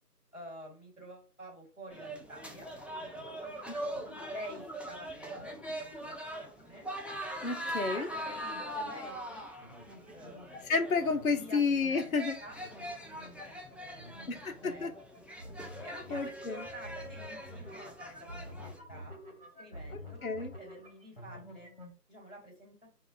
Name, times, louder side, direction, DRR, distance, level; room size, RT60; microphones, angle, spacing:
voice 1, 0.3-2.7 3.0-3.6 4.3-6.9 7.9-9.5 10.1-10.4 11.3-11.6 11.9-12.6 13.0-13.1 13.5-15.2 15.8-19.2 19.6-21.7 22.1-22.7, equal, 50° right, 1.7 m, -49 dB
sound 1, 1.9-18.8, equal, 5° right, 0.4 m, -42 dB
sound 2, 2.3-21.9, equal, 40° left, 0.9 m, -50 dB
voice 2, 7.4-8.1 10.7-12.4 14.3-14.9 16.1-16.6 20.2-20.5, left 4 dB, 60° left, 0.5 m, -31 dB
3.7 x 2.3 x 2.4 m
figure-of-eight pair, 180°, 48 cm